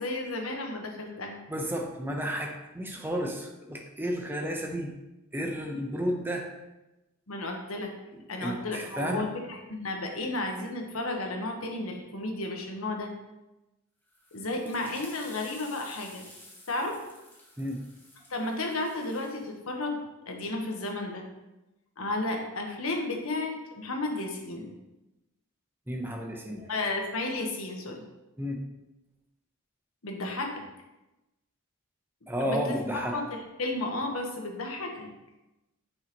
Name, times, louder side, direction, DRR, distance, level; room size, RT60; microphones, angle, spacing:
voice 1, 0.0-1.4 7.3-7.9 8.3-13.1 14.3-16.3 16.7-17.0 18.3-20.0 20.3-21.2 22.0-24.7 26.7-28.0 30.0-30.6 32.4-35.1, left 2 dB, 85° left, 2 dB, 1.3 m, -33 dB
voice 2, 1.5-4.9 5.3-6.5 8.4-9.2 17.6-17.8 25.9-26.7 28.4-28.6 32.3-33.2, equal, 10° right, 1 dB, 0.9 m, -32 dB
sound 1, 14.1-19.5, left 1 dB, 10° left, 1.2 m, -52 dB
8.7 x 5.6 x 3.1 m, 1.0 s
head